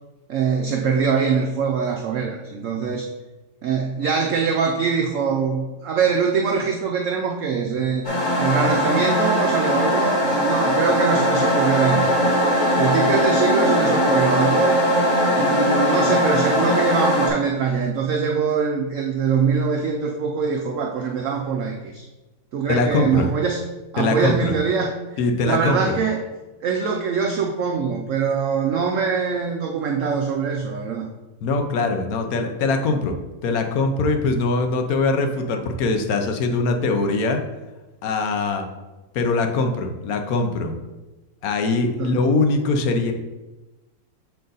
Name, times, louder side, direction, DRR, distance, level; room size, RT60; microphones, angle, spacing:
voice 1, 0.3-3.1 3.6-8.1 8.4-12.2 12.8-14.8 15.3-22.0 22.5-23.6 23.9-24.9 25.4-26.2 26.6-31.1 42.0-42.1, right 6 dB, 80° right, 2 dB, 0.7 m, -23 dB
sound 1, 8.0-17.3, equal, 35° left, 0.8 m, -20 dB
voice 2, 22.7-23.3 24.0-24.5 25.2-25.9 31.4-33.1 33.4-37.4 38.0-38.7 39.1-40.7 41.4-43.1, left 3 dB, 65° left, 5 dB, 1.0 m, -22 dB
6.8 x 3.8 x 3.9 m, 1.1 s
omnidirectional pair, 2.0 m